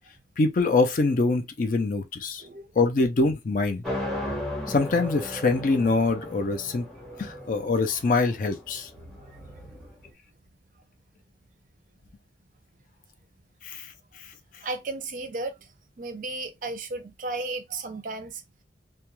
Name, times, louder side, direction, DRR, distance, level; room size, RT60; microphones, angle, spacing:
voice 1, 0.4-2.4 2.8-3.8 4.7-6.9 7.2-8.9 13.6-13.9, left 3 dB, 50° left, 0.4 m, -24 dB
voice 2, 2.4-2.7 9.0-9.8 14.6-15.7 16.0-18.4, right 3 dB, 45° right, 0.5 m, -35 dB
sound 1, 3.8-9.9, left 1 dB, ahead, 0.7 m, -35 dB
2.3 x 2.2 x 2.9 m
head